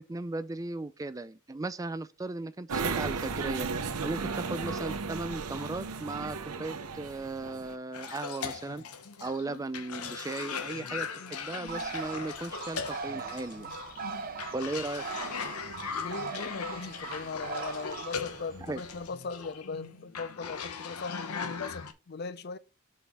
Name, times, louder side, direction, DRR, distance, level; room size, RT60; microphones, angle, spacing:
voice 1, 0.0-8.8 9.2-13.7 14.5-15.0 18.6-18.8, right 2 dB, 15° right, 0.3 m, -37 dB
sound 1, 2.7-7.7, right 4 dB, 85° right, 0.8 m, -35 dB
Cough, 7.9-21.9, left 6 dB, 85° left, 0.9 m, -39 dB
Bird, 11.7-19.1, right 5 dB, 40° right, 0.8 m, -40 dB
voice 2, 16.0-22.6, left 4 dB, 45° left, 0.5 m, -39 dB
5.3 x 4.2 x 5.9 m
head